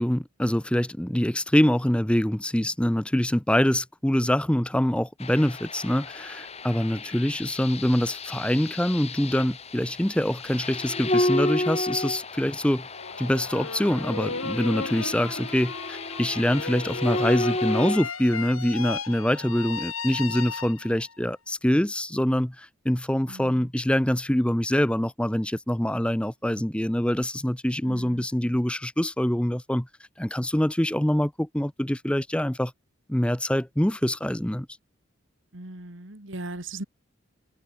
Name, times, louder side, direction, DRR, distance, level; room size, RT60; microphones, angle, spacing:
voice 1, 0.0-12.9 13.2-29.9 30.2-32.7 33.1-34.7, equal, 5° left, 0.6 m, -25 dB
sound 1, 5.2-18.0, left 2 dB, 30° left, 3.1 m, -32 dB
sound 2, 12.9-21.1, left 4 dB, 85° left, 6.9 m, -35 dB
voice 2, 23.3-23.7 27.8-28.2 35.5-36.8, right 2 dB, 65° right, 2.5 m, -38 dB
head